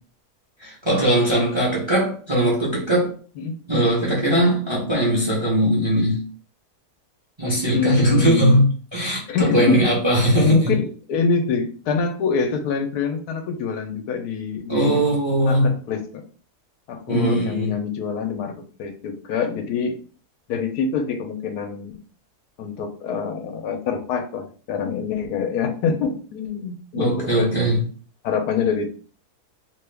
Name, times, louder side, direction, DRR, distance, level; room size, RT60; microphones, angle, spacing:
voice 1, 0.6-3.1 3.7-6.2 7.4-10.7 14.7-15.7 17.1-17.8 26.9-27.8, right 1 dB, 25° right, 0.6 m, -20 dB
voice 2, 7.7-8.6 9.3-9.8 10.4-15.1 15.4-16.2 16.9-20.0 20.5-21.9 22.6-27.5 28.2-28.9, left 5 dB, 80° left, 1.1 m, -25 dB
2.9 x 2.2 x 3.3 m
omnidirectional pair, 1.7 m